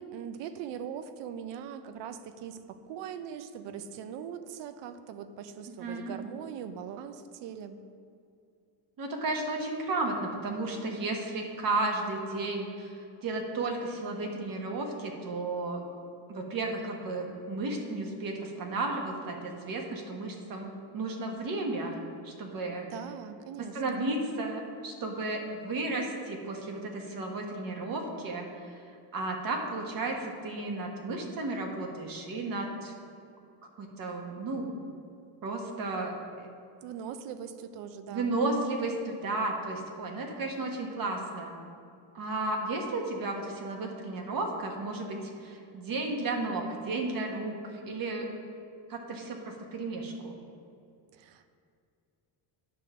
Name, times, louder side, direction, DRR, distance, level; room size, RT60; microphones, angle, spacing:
voice 1, 0.0-7.8 22.9-24.0 36.8-38.4 51.1-51.5, right 8 dB, 65° right, 10 dB, 0.6 m, -41 dB
voice 2, 5.7-6.1 9.0-15.8 16.3-22.0 22.2-22.9 23.7-28.7 29.1-32.9 33.8-34.7 35.4-36.1 36.4-36.5 38.1-41.5 42.1-48.3 48.9-50.4, right 2 dB, 45° right, 2 dB, 1.3 m, -33 dB
9.6 x 3.7 x 6.7 m, 2.4 s
cardioid pair, 135°, 47 cm